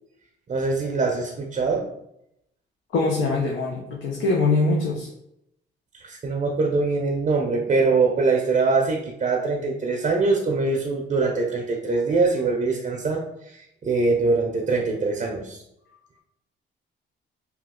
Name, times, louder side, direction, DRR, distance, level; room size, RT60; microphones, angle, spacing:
voice 1, 0.5-1.9 5.9-15.6, right 3 dB, 35° right, 1 dB, 0.5 m, -23 dB
voice 2, 2.9-5.1, left 3 dB, 75° left, -2 dB, 0.6 m, -23 dB
2.9 x 2.3 x 3.6 m, 0.79 s
cardioid pair, 90°, 20 cm